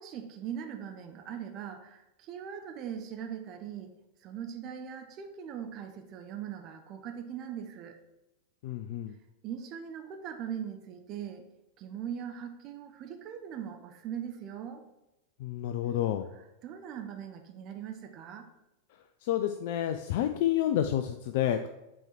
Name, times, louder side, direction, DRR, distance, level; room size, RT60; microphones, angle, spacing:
voice 1, 0.0-3.9 4.2-8.0 9.4-11.4 11.8-14.8 16.4-18.5, right 8 dB, 35° right, 6 dB, 0.7 m, -40 dB
voice 2, 8.6-9.1 15.4-16.3 19.2-21.7, left 11 dB, 50° left, 7 dB, 0.4 m, -29 dB
7.6 x 4.5 x 4.5 m, 0.94 s
figure-of-eight pair, 90°, 0 cm